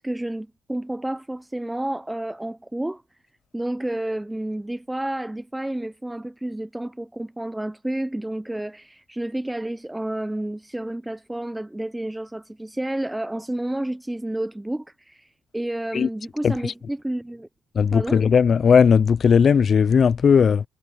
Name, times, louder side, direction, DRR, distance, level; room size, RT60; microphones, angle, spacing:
voice 1, 0.0-3.0 3.5-17.5 17.9-18.2, right 1 dB, 10° right, 0.5 m, -30 dB
voice 2, 17.8-20.6, left 6 dB, 45° left, 0.3 m, -17 dB
cardioid pair, 100°, 0 cm